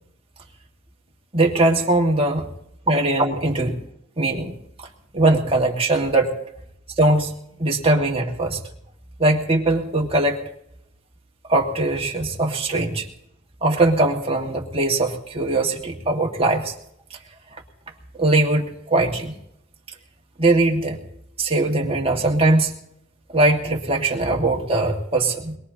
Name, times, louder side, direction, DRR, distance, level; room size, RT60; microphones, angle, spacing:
voice 1, 1.3-2.4 2.9-3.8 4.2-4.5 5.1-6.3 7.0-7.3 7.6-8.6 9.2-10.4 11.5-13.1 13.6-16.7 17.1-17.2 18.2-19.3 20.4-21.0 21.4-22.7 23.3-25.6, right 2 dB, 30° right, 0 dB, 1.8 m, -20 dB
22.5 x 22.0 x 2.8 m, 0.78 s
head